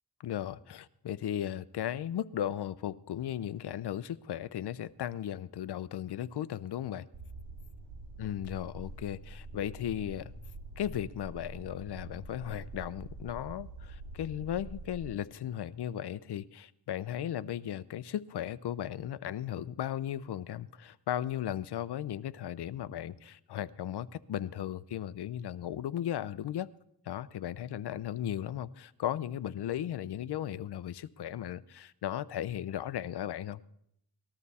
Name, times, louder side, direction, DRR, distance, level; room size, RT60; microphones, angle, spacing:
voice 1, 0.2-7.1 8.2-10.3 10.8-26.7 27.1-33.6, left 11 dB, 70° left, 0.6 m, -36 dB
sound 1, 7.1-15.1, right 2 dB, 50° right, 5.2 m, -46 dB
19.5 x 13.0 x 4.2 m
cardioid pair, 95°, 42 cm